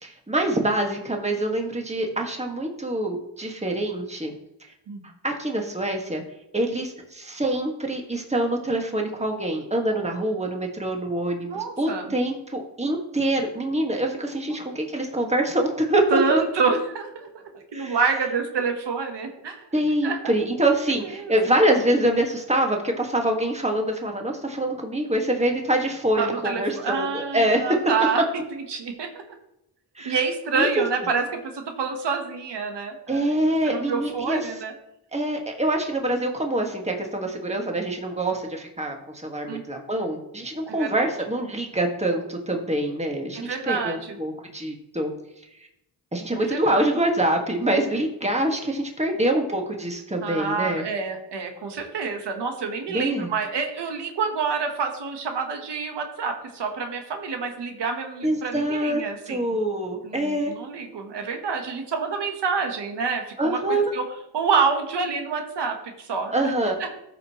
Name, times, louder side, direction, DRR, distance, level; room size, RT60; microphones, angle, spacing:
voice 1, 0.0-4.3 5.2-6.2 6.5-16.4 17.7-18.0 19.7-27.8 29.9-30.2 30.5-30.7 33.1-34.4 35.1-39.0 39.2-45.1 46.1-50.8 52.9-53.3 58.2-60.5 63.4-63.9 66.3-66.8, right 1 dB, 15° right, 2 dB, 1.7 m, -25 dB
voice 2, 11.5-12.1 14.5-14.6 16.1-19.7 20.0-20.4 20.9-21.4 26.2-28.2 28.7-29.1 30.0-34.7 39.5-39.6 40.8-41.1 43.4-44.2 46.5-46.8 50.2-59.6 60.0-64.0 64.3-66.5 66.8-67.0, right 5 dB, 80° right, 4 dB, 1.3 m, -28 dB
13.5 x 5.3 x 3.0 m, 0.84 s
cardioid pair, 65°, 41 cm